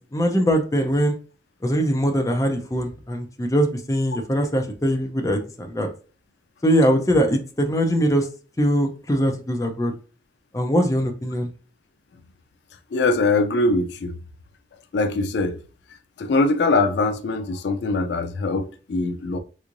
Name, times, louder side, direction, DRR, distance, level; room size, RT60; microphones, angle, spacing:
voice 1, 0.1-1.2 1.6-5.9 6.6-8.3 8.6-9.9 10.5-11.5, equal, 20° left, 0.5 m, -22 dB
voice 2, 12.9-14.2 14.9-15.6 16.2-19.4, left 3 dB, 75° left, 0.4 m, -22 dB
3.5 x 3.0 x 2.5 m
head